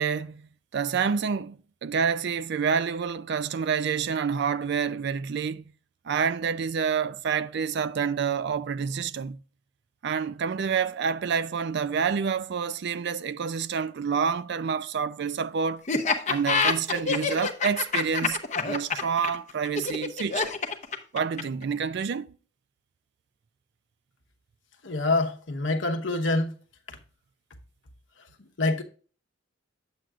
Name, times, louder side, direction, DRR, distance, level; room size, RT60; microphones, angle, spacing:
voice 1, 0.0-5.6 6.0-9.4 10.0-15.8 16.3-20.5 21.1-22.3, right 6 dB, 60° right, 0.4 m, -28 dB
Laughter, 15.9-21.6, left 5 dB, 35° left, 0.9 m, -26 dB
voice 2, 24.8-26.5 28.6-28.8, left 2 dB, 65° left, 1.0 m, -25 dB
8.8 x 7.6 x 2.4 m
head